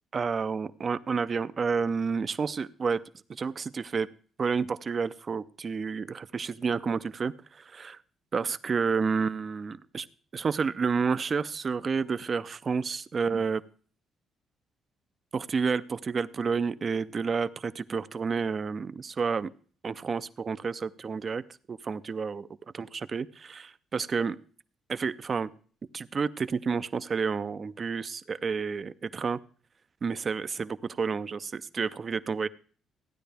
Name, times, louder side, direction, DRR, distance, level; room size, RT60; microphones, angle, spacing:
voice 1, 0.1-3.0 3.3-4.1 4.4-8.0 8.3-10.1 10.3-13.6 15.3-19.5 19.8-21.4 21.7-22.5 22.7-24.4 24.9-25.5 25.9-29.4 30.0-32.5, right 5 dB, 30° right, 15 dB, 0.5 m, -30 dB
15.0 x 10.0 x 3.4 m, 0.43 s
cardioid pair, 165°, 0 cm